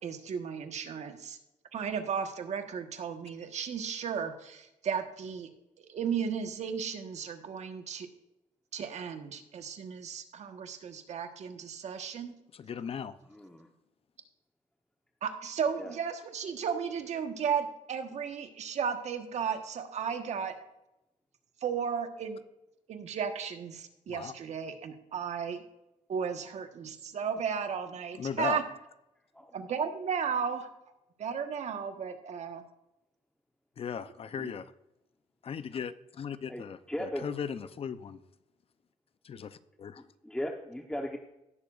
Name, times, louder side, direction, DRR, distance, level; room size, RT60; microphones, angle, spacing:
voice 1, 0.0-1.4 1.7-5.5 5.8-8.1 8.7-12.4 15.2-20.5 21.6-22.4 22.9-25.6 26.1-28.6 29.5-30.7 31.2-32.6 34.4-34.5, right 7 dB, 65° right, 6 dB, 1.3 m, -34 dB
voice 2, 12.5-13.1 24.1-24.3 28.2-28.6 33.8-34.7 35.4-38.2 39.2-40.0, left 7 dB, 50° left, 13 dB, 0.6 m, -37 dB
voice 3, 13.3-13.7 15.8-15.9 29.3-29.5 36.5-37.3 40.0-41.2, equal, 5° left, 2 dB, 1.0 m, -37 dB
18.0 x 6.9 x 2.5 m, 0.90 s
cardioid pair, 95°, 13 cm